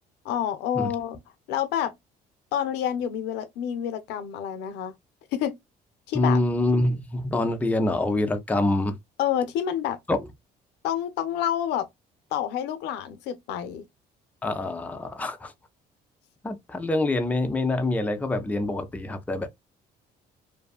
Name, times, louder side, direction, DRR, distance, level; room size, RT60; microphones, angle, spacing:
voice 1, 0.2-1.2 1.5-2.0 2.5-5.0 5.3-5.6 6.1-6.4 9.2-10.0 10.8-11.9 12.3-13.8, left 10 dB, 85° left, 0.5 m, -28 dB
voice 2, 6.1-9.0 10.1-10.2 14.4-15.5 16.4-19.5, left 2 dB, 10° left, 0.4 m, -25 dB
2.6 x 2.3 x 2.3 m
cardioid pair, 110°, 17 cm